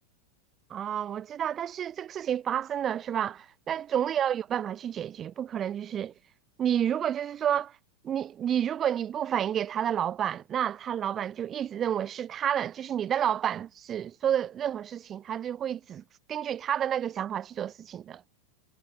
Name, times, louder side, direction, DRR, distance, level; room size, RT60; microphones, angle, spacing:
voice 1, 0.7-6.1 6.6-7.7 8.0-16.0 16.3-18.2, right 9 dB, 25° right, 4.2 m, -30 dB
figure-of-eight pair, 90°, 0 cm